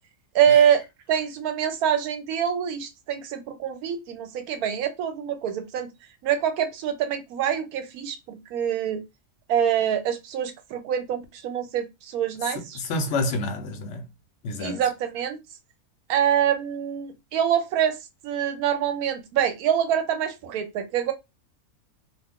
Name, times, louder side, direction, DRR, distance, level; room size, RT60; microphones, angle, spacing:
voice 1, 0.3-0.8 1.1-5.9 6.2-9.0 9.5-12.8 14.6-15.4 16.1-18.0 18.2-21.1, right 9 dB, 85° right, 1.1 m, -25 dB
voice 2, 12.7-14.1 14.4-14.8, left 2 dB, 60° left, 0.9 m, -28 dB
2.5 x 2.4 x 3.5 m
omnidirectional pair, 1.5 m